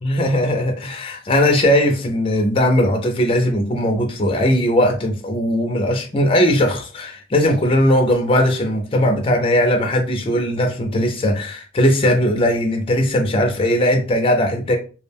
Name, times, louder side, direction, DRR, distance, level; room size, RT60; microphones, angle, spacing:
voice 1, 0.0-14.8, left 1 dB, 25° left, 0.4 m, -18 dB
2.3 x 2.1 x 3.3 m
head